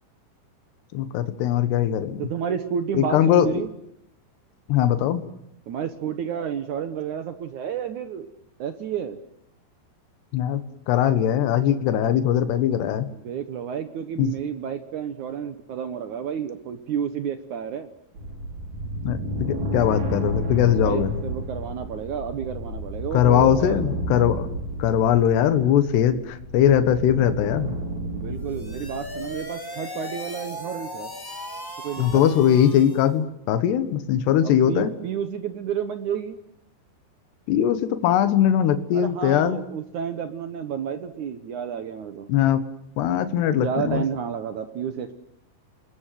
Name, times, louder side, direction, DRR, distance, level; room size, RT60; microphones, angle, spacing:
voice 1, 0.9-2.2 3.0-3.5 4.7-5.2 10.3-10.6 10.9-13.1 14.2-14.3 19.0-21.1 23.1-24.5 24.8-27.7 32.0-34.9 37.5-39.6 42.3-42.6 43.0-44.0, left 10 dB, 70° left, 10 dB, 3.4 m, -20 dB
voice 2, 2.2-3.7 5.7-8.3 8.6-9.2 13.1-17.9 20.7-23.8 28.1-31.1 31.8-32.3 34.4-36.4 38.9-42.3 43.5-45.1, right 8 dB, 75° right, 9 dB, 1.7 m, -31 dB
sound 1, 18.1-29.4, right 1 dB, 40° right, 5.9 m, -32 dB
sound 2, 28.3-33.1, left 1 dB, 15° left, 0.7 m, -37 dB
28.0 x 21.5 x 7.7 m, 0.76 s
omnidirectional pair, 5.2 m